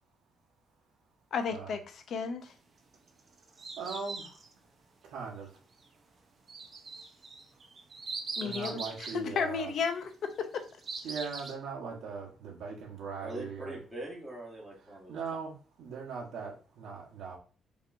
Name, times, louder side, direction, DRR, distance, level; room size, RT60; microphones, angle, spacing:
voice 1, 1.3-2.5 8.4-8.8 9.1-10.6, left 6 dB, 55° left, 7 dB, 0.6 m, -33 dB
sound 1, 2.9-4.5 6.5-9.2 10.3-11.5, right 4 dB, 30° right, 0.7 m, -41 dB
voice 2, 3.8-4.2 5.1-5.5 8.4-9.7 11.0-13.8 15.1-15.5 15.8-17.4, right 5 dB, 85° right, -3 dB, 1.2 m, -39 dB
voice 3, 13.2-15.2, right 1 dB, 5° right, -5 dB, 1.4 m, -42 dB
5.2 x 3.0 x 2.6 m, 0.36 s
cardioid pair, 155°, 0 cm